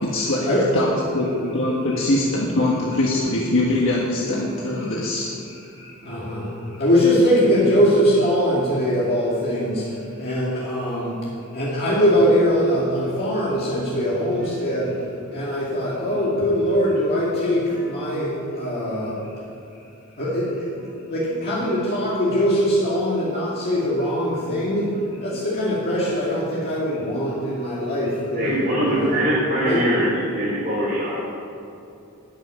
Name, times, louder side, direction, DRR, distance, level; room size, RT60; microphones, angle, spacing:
voice 1, 0.0-0.5 0.7-5.6, left 1 dB, 65° left, -4 dB, 1.5 m, -23 dB
voice 2, 4.3-4.9 9.2-9.4 10.4-11.0 11.8-12.0 13.9-14.0 14.5-14.6 15.0-15.1 15.5-15.6 16.0-16.2 17.7-17.9 18.9-19.1 19.9-20.0 20.8-20.9 21.3-21.4 24.4-24.7 24.9-25.3 26.0-26.1 26.4-26.6 28.4-31.3, right 1 dB, 45° right, -8 dB, 3.5 m, -26 dB
voice 3, 5.8-19.4 20.2-20.7 21.1-29.3 29.5-29.8, equal, 50° left, -7 dB, 2.4 m, -22 dB
13.0 x 6.3 x 9.9 m, 2.8 s
head